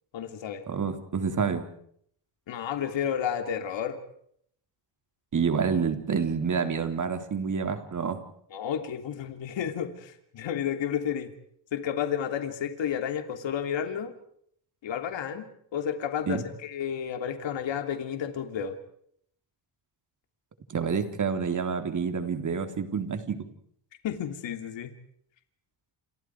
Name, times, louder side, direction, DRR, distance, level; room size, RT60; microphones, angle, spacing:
voice 1, 0.1-0.6 2.5-4.0 8.5-11.3 11.7-14.1 14.8-18.8 24.0-24.9, left 8 dB, 75° left, 7 dB, 3.2 m, -31 dB
voice 2, 0.7-1.7 5.3-8.2 16.3-16.4 20.7-23.5, right 6 dB, 40° right, 7 dB, 3.8 m, -28 dB
29.5 x 27.0 x 4.9 m, 0.66 s
cardioid pair, 115°, 45 cm